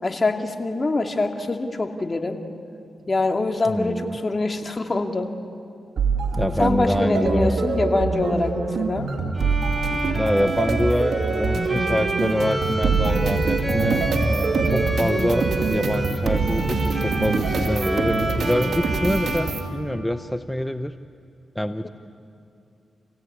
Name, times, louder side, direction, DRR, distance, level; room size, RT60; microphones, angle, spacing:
voice 1, 0.0-2.4 3.0-5.3 6.6-9.1 21.8-21.9, left 2 dB, 35° left, 4 dB, 2.3 m, -24 dB
voice 2, 3.7-4.2 6.4-7.7 10.1-20.9 21.5-21.9, equal, 5° left, 10 dB, 0.8 m, -26 dB
sound 1, 6.0-19.7, right 4 dB, 65° right, 2.6 m, -24 dB
Bowed string instrument, 9.4-20.4, right 1 dB, 15° right, 3.9 m, -29 dB
27.0 x 17.0 x 9.6 m, 2.6 s
supercardioid pair, 50°, 0 cm